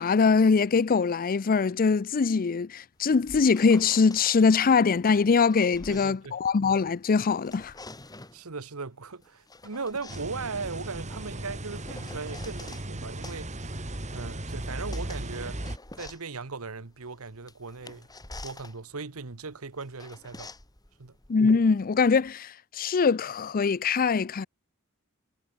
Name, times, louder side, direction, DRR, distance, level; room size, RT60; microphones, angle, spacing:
voice 1, 0.0-7.7 21.3-24.5, left 5 dB, 40° left, 0.5 m, -23 dB
sound 1, 3.0-4.4 5.2-7.0 7.3-8.5 9.2-12.9 13.2-22.3, left 2 dB, 20° left, 2.0 m, -48 dB
voice 2, 5.9-6.4 8.3-13.7 14.1-15.6 16.0-18.1 18.4-20.5 21.0-21.1, right 4 dB, 75° right, 1.2 m, -38 dB
Roomtone Hallway Spinnerij Front, 10.1-15.8, right 1 dB, 35° right, 2.6 m, -36 dB
head